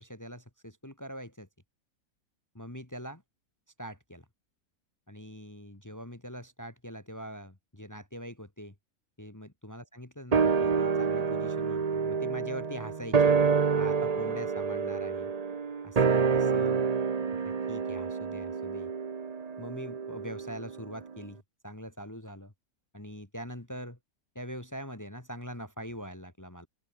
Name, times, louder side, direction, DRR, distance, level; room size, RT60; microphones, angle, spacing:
voice 1, 0.0-1.5 2.5-3.2 3.8-4.3 5.1-8.7 9.2-13.4 13.8-15.3 15.8-16.8 17.4-18.9 19.6-21.4 21.6-22.5 22.9-24.0 24.4-26.7, equal, 10° left, 1.9 m, -43 dB
sound 1, 10.3-20.9 21.2-21.3, right 5 dB, 35° right, 0.8 m, -28 dB
open air
omnidirectional pair, 1.6 m